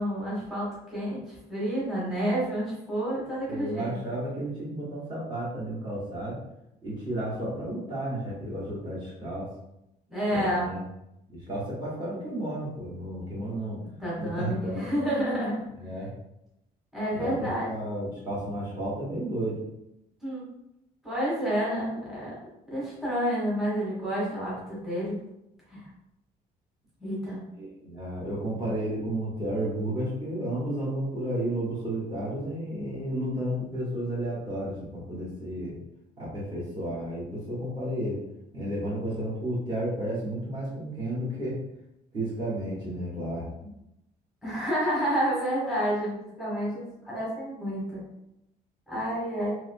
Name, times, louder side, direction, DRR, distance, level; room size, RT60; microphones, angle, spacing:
voice 1, 0.0-3.9 10.1-10.7 14.0-15.6 16.9-17.7 20.2-20.4 21.0-22.3 22.7-25.2 25.7-25.8 27.0-27.4 44.4-48.0 48.9-49.5, equal, ahead, -8 dB, 1.4 m, -29 dB
voice 2, 3.5-6.4 6.8-9.5 10.3-10.8 11.3-13.8 14.2-15.0 15.8-16.1 17.1-19.6 27.6-35.7 36.2-38.2 38.5-41.6 42.1-43.4, right 1 dB, 25° right, -8 dB, 1.5 m, -32 dB
3.5 x 3.0 x 2.3 m, 0.85 s
cardioid pair, 110°, 17 cm